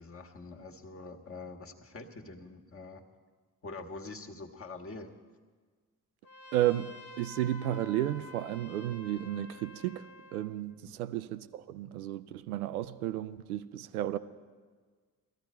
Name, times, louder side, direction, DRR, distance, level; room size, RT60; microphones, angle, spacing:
voice 1, 0.0-3.0 3.6-5.2 10.8-11.0, left 3 dB, 30° left, 1.5 m, -45 dB
Trumpet, 6.2-10.5, left 2 dB, 45° left, 1.4 m, -50 dB
voice 2, 6.5-10.0 10.3-14.2, right 13 dB, 80° right, 0.5 m, -33 dB
18.5 x 14.0 x 4.4 m
figure-of-eight pair, 40°, 43 cm